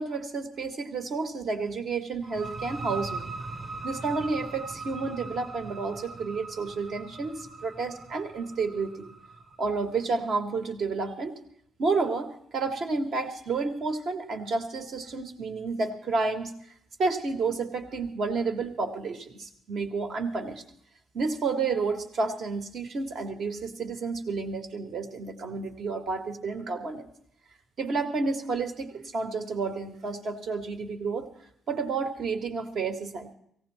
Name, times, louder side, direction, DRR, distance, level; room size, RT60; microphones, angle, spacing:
voice 1, 0.0-3.3 3.8-9.1 9.6-11.4 11.8-16.5 17.0-20.6 21.1-27.1 27.8-31.3 31.7-33.3, right 4 dB, 60° right, 6 dB, 2.1 m, -30 dB
sound 1, 2.2-9.7, right 3 dB, 25° right, 1.0 m, -40 dB
18.0 x 16.5 x 4.4 m, 0.70 s
cardioid pair, 90°, 0 cm